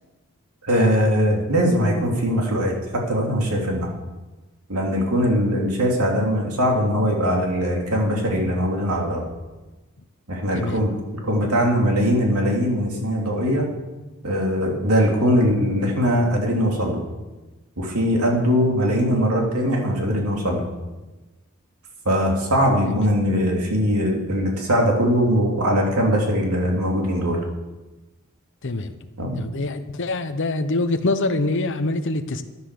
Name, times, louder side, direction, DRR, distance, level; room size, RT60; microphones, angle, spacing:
voice 1, 0.6-3.9 4.7-9.2 10.3-10.9 11.2-13.7 14.2-17.0 17.8-20.7 22.0-27.4 29.2-29.4, equal, 80° right, 0 dB, 3.1 m, -21 dB
voice 2, 28.6-28.9 29.4-32.4, left 2 dB, 55° left, 7 dB, 0.9 m, -24 dB
14.0 x 10.5 x 6.9 m, 1.2 s
head